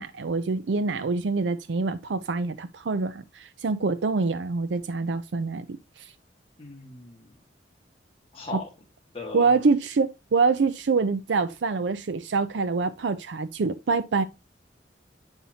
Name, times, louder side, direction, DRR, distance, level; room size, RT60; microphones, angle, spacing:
voice 1, 0.0-6.1 8.5-8.6 9.3-14.2, right 4 dB, 75° right, 0.5 m, -25 dB
voice 2, 6.6-7.4 8.3-8.7 9.1-9.5, left 3 dB, 30° left, 1.7 m, -37 dB
8.8 x 5.5 x 2.8 m
head